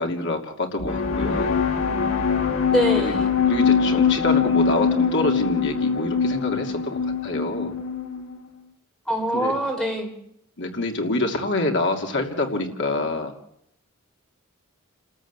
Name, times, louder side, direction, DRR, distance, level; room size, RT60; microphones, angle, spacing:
voice 1, 0.0-1.6 2.9-3.1 3.5-7.7 9.3-9.5 10.6-13.3, left 2 dB, 55° left, 3 dB, 2.9 m, -26 dB
sound 1, 0.8-8.4, left 6 dB, 80° left, 2.7 m, -22 dB
voice 2, 2.7-3.3 9.1-10.1, equal, 5° left, 1 dB, 4.3 m, -24 dB
29.0 x 13.5 x 8.3 m, 0.76 s
head